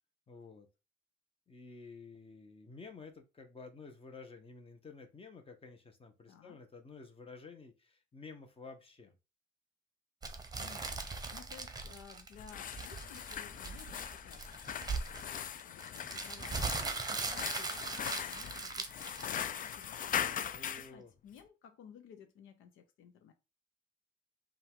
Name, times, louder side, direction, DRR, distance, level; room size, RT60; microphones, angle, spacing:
voice 1, 0.3-0.7 1.5-9.1 20.5-21.1, left 4 dB, 30° left, 1.1 m, -52 dB
voice 2, 6.3-6.6 10.5-11.0 11.3-15.0 15.6-23.3, left 8 dB, 85° left, 0.7 m, -57 dB
sound 1, 10.2-19.7, right 4 dB, 20° right, 0.9 m, -40 dB
sound 2, 12.3-20.9, left 9 dB, 45° left, 0.4 m, -40 dB
5.5 x 2.5 x 3.6 m
cardioid pair, 90°, 20 cm